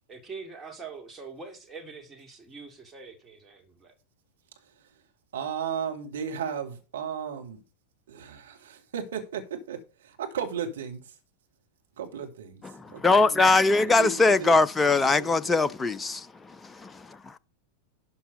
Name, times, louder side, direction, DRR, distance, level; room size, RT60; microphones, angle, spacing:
voice 1, 0.1-3.9, right 4 dB, 15° right, 2.3 m, -44 dB
voice 2, 5.3-7.6 8.1-11.1 12.0-12.6 12.9-15.6, right 7 dB, 60° right, 2.3 m, -35 dB
voice 3, 12.7-16.3 16.6-17.4, left 3 dB, 15° left, 0.4 m, -22 dB
12.0 x 5.7 x 5.5 m
figure-of-eight pair, 90°, 0 cm